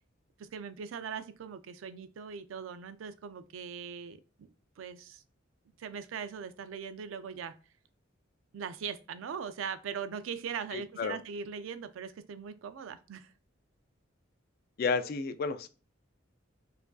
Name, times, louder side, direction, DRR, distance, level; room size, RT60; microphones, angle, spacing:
voice 1, 0.4-4.2 4.8-5.2 5.8-7.5 8.5-13.3, right 6 dB, 85° right, 12 dB, 0.4 m, -40 dB
voice 2, 10.7-11.2 14.8-15.7, left 5 dB, 50° left, 11 dB, 0.3 m, -31 dB
4.6 x 2.5 x 2.3 m, 0.34 s
head